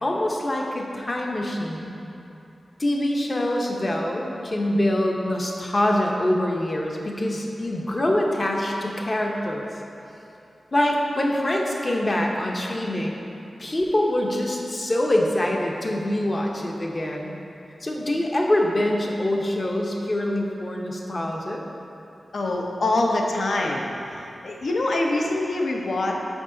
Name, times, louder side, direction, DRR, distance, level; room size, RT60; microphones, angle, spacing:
voice 1, 0.0-2.0 2.8-9.7 10.7-13.2 13.6-17.3 17.8-21.7, left 1 dB, 35° left, 0 dB, 0.7 m, -24 dB
voice 2, 22.3-26.2, left 2 dB, 70° left, 0 dB, 0.7 m, -25 dB
6.2 x 5.0 x 3.8 m, 2.9 s
wide cardioid pair, 80°, 0 cm